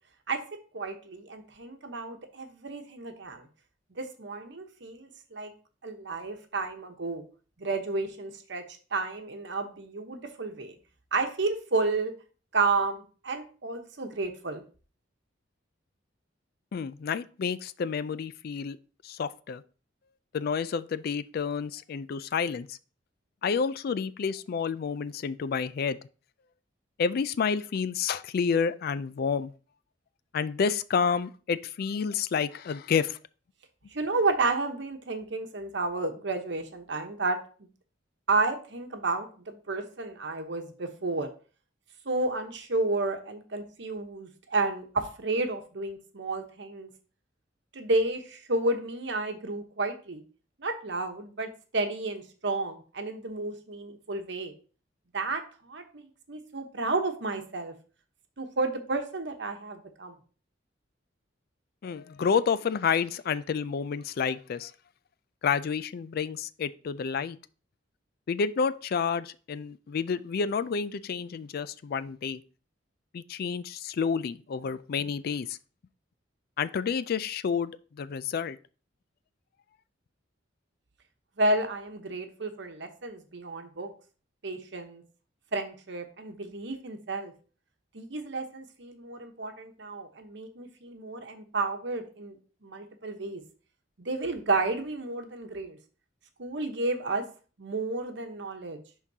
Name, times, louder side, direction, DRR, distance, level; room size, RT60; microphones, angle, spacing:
voice 1, 0.7-3.5 3.9-5.5 5.8-7.2 7.6-8.6 8.9-10.8 11.1-12.1 12.5-14.6 33.9-37.7 38.3-41.3 42.0-46.9 47.7-50.2 50.6-54.5 55.1-57.7 58.4-60.2 81.4-83.9 84.4-85.0 85.5-87.3 87.9-92.4 92.6-93.4 94.0-95.8 96.4-97.2 97.6-98.8, right 3 dB, 65° right, 1.0 m, -31 dB
voice 2, 16.7-18.8 19.0-19.6 20.3-22.8 23.4-26.0 27.0-29.5 30.3-33.2 61.8-64.7 65.4-67.4 68.3-72.4 73.1-75.6 76.6-78.6, left 6 dB, 55° left, 0.3 m, -29 dB
10.5 x 3.8 x 2.8 m
head